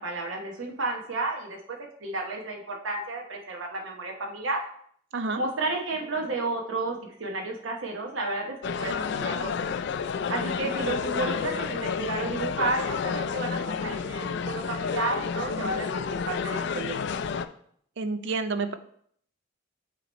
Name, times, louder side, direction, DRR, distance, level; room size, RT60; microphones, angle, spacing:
voice 1, 0.0-4.6 5.3-9.7 10.3-16.9, right 2 dB, 80° right, 0 dB, 0.9 m, -32 dB
sound 1, 8.6-17.5, left 6 dB, 60° left, 0.3 m, -30 dB
voice 2, 18.0-18.7, right 3 dB, 60° right, 10 dB, 0.5 m, -29 dB
8.3 x 2.9 x 4.2 m, 0.63 s
head